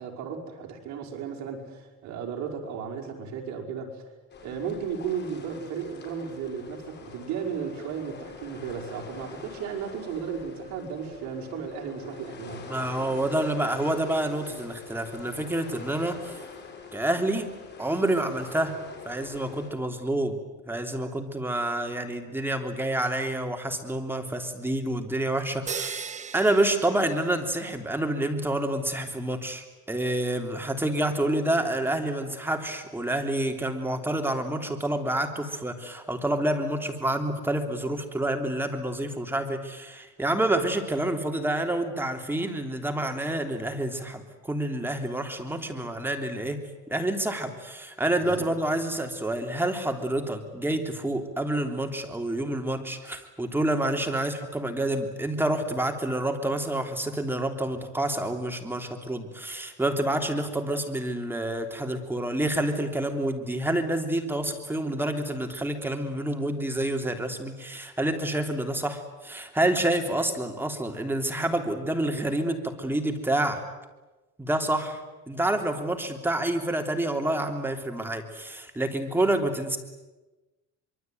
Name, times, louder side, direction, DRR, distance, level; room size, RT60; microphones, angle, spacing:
voice 1, 0.0-4.0 4.4-12.7 48.2-48.5, right 7 dB, 60° right, 2 dB, 5.5 m, -35 dB
sound 1, 4.3-19.7, left 6 dB, 35° left, 6.1 m, -44 dB
voice 2, 12.7-16.4 16.9-17.5 17.8-18.7 19.0-20.4 20.7-46.6 46.9-73.6 74.4-75.0 75.3-79.8, right 1 dB, 5° right, 4 dB, 3.3 m, -28 dB
sound 2, 25.7-27.8, right 6 dB, 25° right, 0.9 m, -37 dB
25.0 x 23.5 x 9.3 m, 1.1 s
cardioid pair, 130°, 31 cm